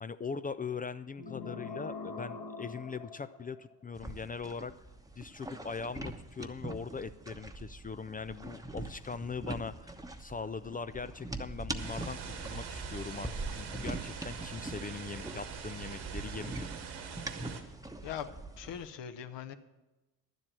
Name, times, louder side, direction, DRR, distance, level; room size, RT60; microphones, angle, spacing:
voice 1, 0.0-4.7 5.2-16.7, left 5 dB, 20° left, 13 dB, 0.4 m, -41 dB
sound 1, 1.2-3.8, left 4 dB, 40° left, 1.4 m, -43 dB
sound 2, 3.9-18.9, right 2 dB, 5° right, 1.0 m, -43 dB
sound 3, 11.8-17.6, right 6 dB, 70° right, 1.9 m, -43 dB
voice 2, 18.0-19.5, left 9 dB, 60° left, 9 dB, 1.1 m, -41 dB
11.0 x 7.7 x 7.5 m, 1.1 s
hypercardioid pair, 60°, 48 cm